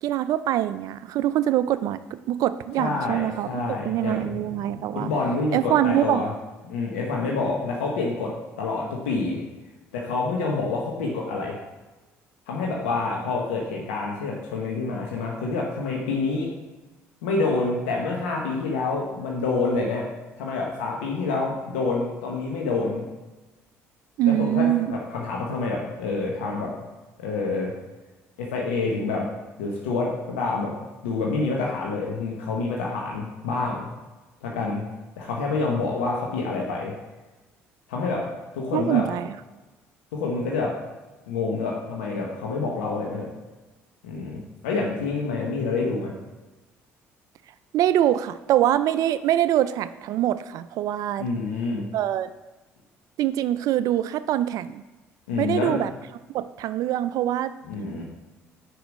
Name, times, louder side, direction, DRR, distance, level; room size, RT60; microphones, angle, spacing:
voice 1, 0.0-2.0 2.3-5.1 5.5-6.3 24.2-25.0 38.7-39.3 47.7-51.3 51.9-52.3 53.2-54.8 55.4-55.9 56.3-57.5, right 12 dB, 65° right, 14 dB, 0.3 m, -24 dB
voice 2, 2.8-6.3 6.7-9.4 9.9-11.6 12.5-16.5 17.2-20.1 20.4-23.1 24.2-26.7 27.2-27.7 28.4-29.3 29.6-30.7 31.0-33.9 34.4-34.8 35.2-36.9 37.9-38.3 38.5-39.0 40.1-40.7 41.3-43.3 44.0-46.1 51.2-51.9 55.3-55.8 57.7-58.0, left 3 dB, 90° left, -2 dB, 0.9 m, -27 dB
4.9 x 4.5 x 5.1 m, 1.2 s
hypercardioid pair, 65°, 7 cm